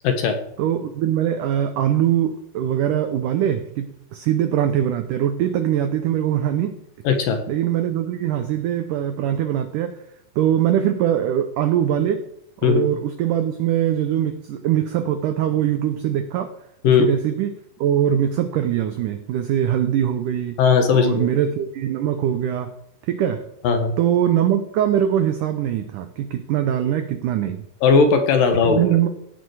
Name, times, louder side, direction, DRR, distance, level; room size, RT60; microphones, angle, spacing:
voice 1, 0.0-0.4 7.0-7.4 12.6-12.8 16.8-17.1 20.6-21.3 23.6-23.9 27.8-29.0, left 5 dB, 65° left, 5 dB, 2.6 m, -17 dB
voice 2, 0.6-6.8 7.5-10.0 10.4-12.3 12.6-16.5 16.8-20.6 20.9-22.7 23.1-23.5 24.0-27.6 28.6-29.1, right 10 dB, 90° right, 8 dB, 1.8 m, -22 dB
16.5 x 8.4 x 4.7 m, 0.78 s
omnidirectional pair, 4.7 m